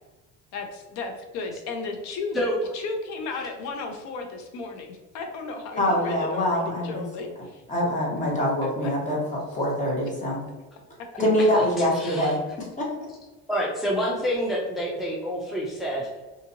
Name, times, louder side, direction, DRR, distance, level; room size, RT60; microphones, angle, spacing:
voice 1, 0.5-2.4 2.7-7.6 8.6-8.9 11.1-11.2, left 4 dB, 70° left, 4 dB, 0.5 m, -34 dB
voice 2, 5.8-7.0 7.7-9.2 9.5-10.4 11.2-13.1, left 1 dB, 25° left, -3 dB, 1.0 m, -24 dB
voice 3, 11.9-12.3 13.5-16.1, equal, ahead, -2 dB, 0.4 m, -27 dB
2.7 x 2.7 x 2.5 m, 1.2 s
cardioid pair, 125°, 30 cm